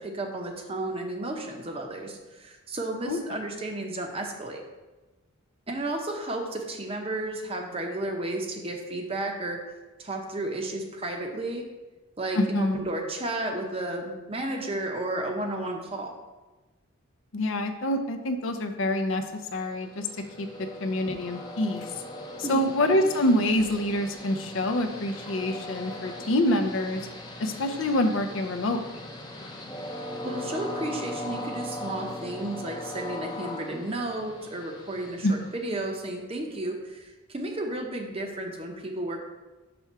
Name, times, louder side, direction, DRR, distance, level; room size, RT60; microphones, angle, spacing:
voice 1, 0.0-4.6 5.7-9.6 10.0-11.6 12.2-16.1 20.6-20.7 22.4-22.7 30.2-39.2, right 1 dB, 25° right, 2 dB, 0.7 m, -33 dB
voice 2, 12.3-12.8 17.3-19.3 19.5-20.1 20.4-22.0 22.4-27.1 27.4-29.0 35.2-35.4, left 1 dB, 60° left, 6 dB, 0.5 m, -26 dB
Train, 19.3-36.1, left 1 dB, 20° left, 0.6 m, -39 dB
5.9 x 3.5 x 5.6 m, 1.2 s
head